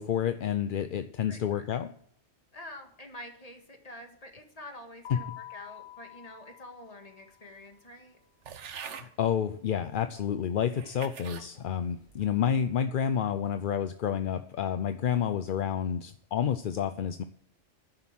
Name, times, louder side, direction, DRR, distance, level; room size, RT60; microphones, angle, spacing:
voice 1, 0.0-1.9 5.1-5.2 8.8-17.2, left 8 dB, 55° left, 10 dB, 0.7 m, -29 dB
voice 2, 1.3-1.6 2.5-8.2, left 1 dB, 30° left, 4 dB, 1.9 m, -47 dB
Keyboard (musical), 5.0-7.6, left 14 dB, 75° left, 1.0 m, -47 dB
sound 1, 8.4-9.1 9.9-10.0 10.7-11.5 12.0-12.4, right 7 dB, 75° right, 1.2 m, -44 dB
10.5 x 7.8 x 7.4 m, 0.65 s
omnidirectional pair, 1.2 m